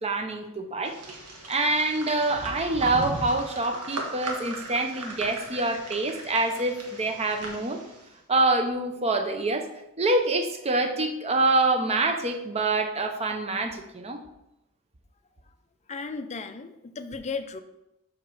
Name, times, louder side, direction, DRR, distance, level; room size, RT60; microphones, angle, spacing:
voice 1, 0.0-1.0 1.5-7.8 8.3-9.7 10.0-14.2, right 2 dB, 30° right, 7 dB, 0.7 m, -26 dB
sound 1, 0.8-8.1, right 2 dB, 85° right, 1.4 m, -39 dB
voice 2, 15.9-17.6, left 4 dB, 30° left, 9 dB, 0.4 m, -35 dB
6.1 x 5.0 x 4.7 m, 0.87 s
head